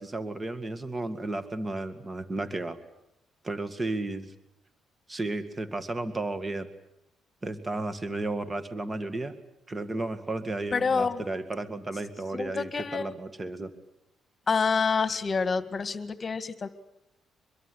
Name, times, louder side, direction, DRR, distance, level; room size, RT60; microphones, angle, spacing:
voice 1, 0.0-2.8 3.4-4.3 5.1-6.7 7.4-9.3 9.7-13.7, right 2 dB, 25° right, 10 dB, 2.2 m, -33 dB
voice 2, 10.7-11.2 12.3-13.1 14.5-16.7, left 5 dB, 35° left, 12 dB, 1.8 m, -27 dB
24.5 x 22.5 x 9.9 m, 0.85 s
cardioid pair, 90°, 0 cm